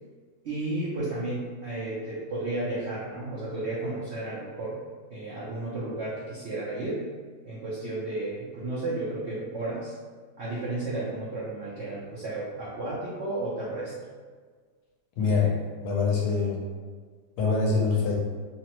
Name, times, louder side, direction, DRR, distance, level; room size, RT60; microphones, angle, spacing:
voice 1, 0.4-4.8 5.1-7.0 7.5-9.9 10.4-13.9 15.2-15.5, right 2 dB, 70° right, -8 dB, 0.6 m, -33 dB
voice 2, 15.8-16.6 17.4-18.2, left 4 dB, 75° left, -3 dB, 1.1 m, -24 dB
3.0 x 2.0 x 2.9 m, 1.5 s
omnidirectional pair, 1.8 m